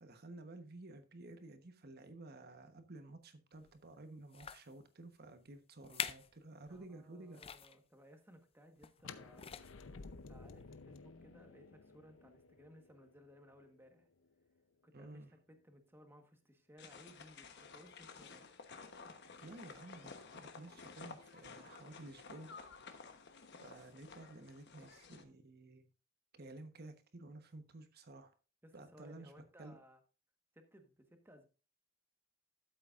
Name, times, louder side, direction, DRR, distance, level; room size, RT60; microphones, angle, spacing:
voice 1, 0.0-7.4 14.9-15.3 19.4-22.5 23.6-25.9 26.3-28.3 28.7-29.3 29.6-29.8, right 2 dB, 55° right, 1.1 m, -53 dB
sound 1, 3.6-3.8 4.3-4.7 5.4-5.5 5.8-6.3 6.7-6.8 7.3-7.8 8.8-9.1 9.3-9.9 10.6-10.7, left 8 dB, 30° left, 0.4 m, -44 dB
voice 2, 6.7-9.5 10.3-14.1 14.8-18.5 28.6-30.0 30.5-31.5, equal, 10° right, 1.3 m, -61 dB
sound 2, 9.0-14.8, left 4 dB, 85° left, 0.7 m, -55 dB
sound 3, 16.8-25.2, left 4 dB, 60° left, 1.1 m, -54 dB
12.5 x 7.7 x 2.5 m
head